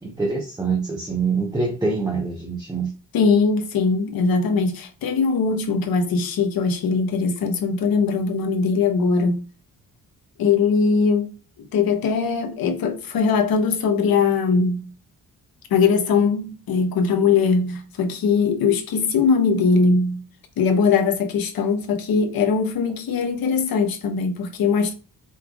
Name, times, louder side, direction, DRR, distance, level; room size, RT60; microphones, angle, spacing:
voice 1, 0.0-2.9, right 4 dB, 10° right, 1.0 m, -25 dB
voice 2, 3.1-9.4 10.4-11.3 11.7-14.9 15.7-20.2 20.6-24.9, left 5 dB, 75° left, 1.0 m, -21 dB
5.4 x 3.3 x 2.4 m
cardioid pair, 100°, 36 cm